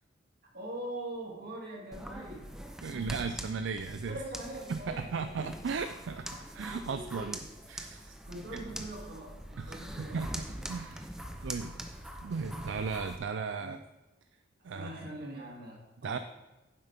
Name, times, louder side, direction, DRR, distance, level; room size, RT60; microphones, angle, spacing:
voice 1, 0.5-2.6 2.9-3.5 4.1-5.7 8.3-10.2 10.5-11.0 11.3-11.8 13.6-13.8 14.7-16.2, right 1 dB, 50° right, -2 dB, 2.4 m, -43 dB
sound 1, 1.9-13.2, equal, 5° right, 0.6 m, -43 dB
voice 2, 2.8-4.2 4.7-6.3 6.5-8.1 8.5-8.6 9.6-11.1 11.4-11.7 12.2-13.8 14.6-14.9 16.0-16.2, right 5 dB, 70° right, 9 dB, 0.4 m, -36 dB
9.8 x 7.6 x 3.5 m, 1.1 s
head